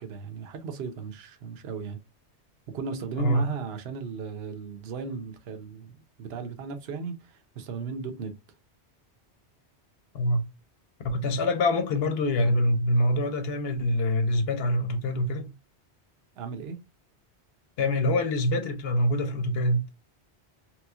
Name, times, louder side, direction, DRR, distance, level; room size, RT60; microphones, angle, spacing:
voice 1, 0.0-2.0 2.7-8.4 16.4-16.8, right 5 dB, 65° right, 0.9 m, -36 dB
voice 2, 10.1-10.5 11.0-15.5 17.8-19.8, left 1 dB, 65° left, 0.9 m, -25 dB
3.2 x 3.0 x 2.3 m
omnidirectional pair, 1.1 m